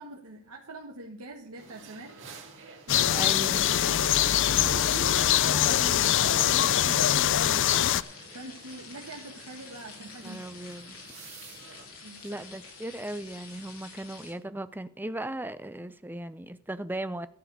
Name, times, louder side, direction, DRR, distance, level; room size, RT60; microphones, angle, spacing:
voice 1, 0.0-2.1 2.9-4.0 4.6-7.9 8.3-10.7 12.0-12.4, right 2 dB, 85° right, 1.5 m, -43 dB
sound 1, 1.6-11.9, right 4 dB, 60° right, 2.5 m, -51 dB
sound 2, 2.9-14.3, left 4 dB, 75° left, 4.7 m, -48 dB
sound 3, 2.9-8.0, left 11 dB, 55° left, 0.4 m, -23 dB
voice 2, 3.1-3.7 10.0-11.0 12.2-17.3, right 1 dB, 10° right, 0.5 m, -37 dB
13.5 x 4.8 x 8.1 m
head